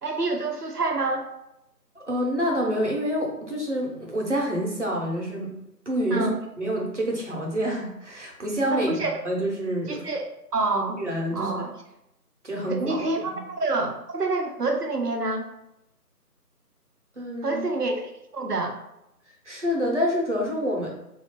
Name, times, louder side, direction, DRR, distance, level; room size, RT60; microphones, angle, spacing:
voice 1, 0.0-1.3 6.1-6.4 8.7-9.2 9.9-10.3 10.5-11.0 11.3-11.7 12.7-13.3 13.6-15.4 17.4-18.8, right 3 dB, 70° right, 3 dB, 0.9 m, -27 dB
voice 2, 1.9-5.5 5.9-6.3 6.6-10.0 11.0-11.6 12.4-13.4 17.2-17.6 19.4-20.9, equal, 45° right, -2 dB, 1.0 m, -27 dB
4.1 x 2.8 x 3.0 m, 0.84 s
figure-of-eight pair, 170°, 48 cm